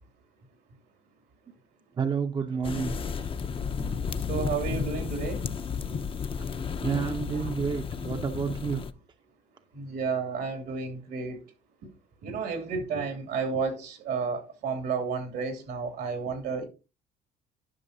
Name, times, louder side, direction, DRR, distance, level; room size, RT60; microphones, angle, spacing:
voice 1, 2.0-3.0 6.8-8.8, right 6 dB, 25° right, 0.7 m, -29 dB
sound 1, 2.6-8.9, left 6 dB, 30° left, 0.6 m, -33 dB
voice 2, 4.3-5.4 5.9-6.0 6.9-7.0 7.3-7.5 9.7-11.4 12.2-16.6, right 5 dB, 75° right, 2.6 m, -32 dB
11.0 x 5.8 x 2.7 m
cardioid pair, 110°, 17 cm